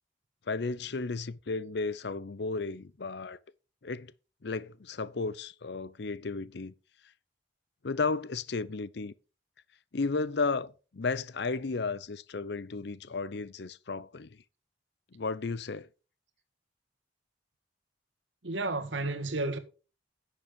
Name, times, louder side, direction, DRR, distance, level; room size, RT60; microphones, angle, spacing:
voice 1, 0.5-3.4 3.8-4.1 4.4-6.7 7.8-9.1 9.9-14.4 15.1-15.9, left 4 dB, 65° left, 0.6 m, -33 dB
voice 2, 18.4-19.6, right 2 dB, 90° right, 1.5 m, -32 dB
10.5 x 6.8 x 5.2 m
head